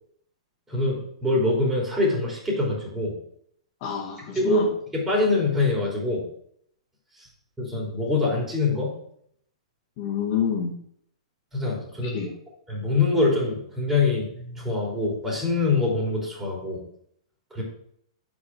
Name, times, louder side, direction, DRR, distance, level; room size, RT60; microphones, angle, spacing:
voice 1, 0.7-3.1 4.4-4.7 4.9-6.2 7.2-7.3 7.6-8.9 11.5-12.2 12.7-16.8 17.5-17.6, left 2 dB, 10° right, -4 dB, 3.3 m, -24 dB
voice 2, 3.8-4.7 10.0-10.8 12.0-12.3, left 8 dB, 40° left, -1 dB, 2.3 m, -28 dB
8.2 x 5.4 x 4.7 m, 0.66 s
figure-of-eight pair, 105°, 3 cm